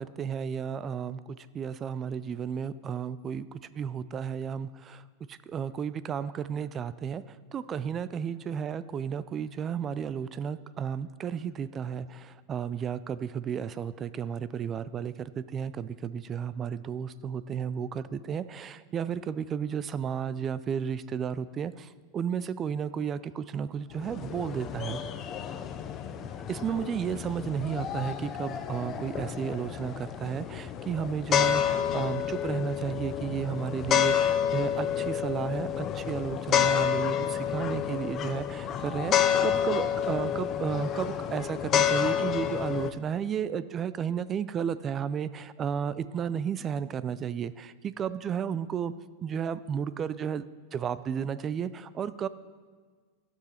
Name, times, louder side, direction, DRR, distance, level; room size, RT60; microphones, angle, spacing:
voice 1, 0.0-5.0 5.3-7.2 7.5-25.0 26.5-48.9 49.2-50.4 50.7-52.3, right 7 dB, 25° right, 16 dB, 0.3 m, -33 dB
sound 1, 23.9-42.9, left 9 dB, 30° left, 0.5 m, -29 dB
15.0 x 6.2 x 4.3 m, 1.5 s
supercardioid pair, 145°, 0 cm